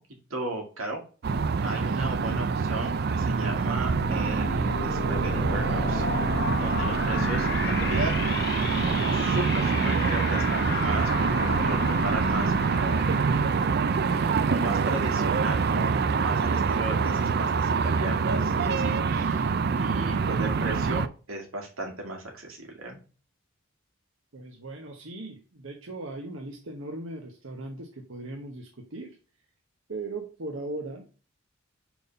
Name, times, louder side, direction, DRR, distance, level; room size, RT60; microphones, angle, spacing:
voice 1, 0.3-1.0 1.6-11.1 11.4-13.1 14.0-23.0, right 2 dB, 85° right, 1 dB, 2.3 m, -36 dB
sound 1, 1.2-21.1, right 5 dB, 50° right, 0.4 m, -25 dB
sound 2, 3.5-14.9, left 4 dB, 50° left, 0.9 m, -34 dB
voice 2, 24.3-29.2 29.9-31.1, right 2 dB, 65° right, 2 dB, 1.0 m, -38 dB
5.3 x 4.6 x 5.3 m, 0.36 s
head